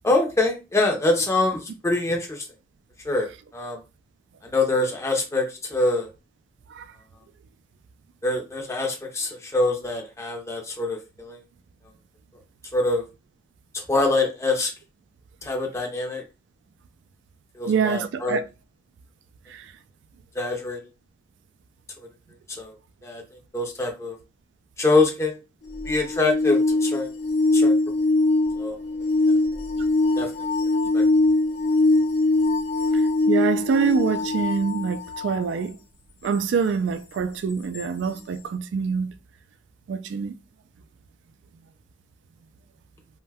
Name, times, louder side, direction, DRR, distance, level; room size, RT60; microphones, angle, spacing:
voice 1, 0.0-2.5 3.0-3.8 4.4-6.1 8.2-11.4 12.7-13.0 13.7-14.7 15.4-16.2 17.5-18.4 20.3-20.8 22.0-22.1 22.5-22.7 23.0-24.2 24.8-25.4 25.8-27.1 27.5-27.8 28.6-28.8 29.3-29.4 30.2-30.5 30.9-31.0, left 2 dB, 15° left, 0.5 m, -25 dB
voice 2, 17.7-18.4 19.5-19.7 32.9-35.8 36.2-39.1 39.9-40.4, right 5 dB, 75° right, 0.3 m, -25 dB
sound 1, 25.7-35.4 37.7-37.8, left 2 dB, 65° left, 0.6 m, -22 dB
2.6 x 2.2 x 3.3 m
head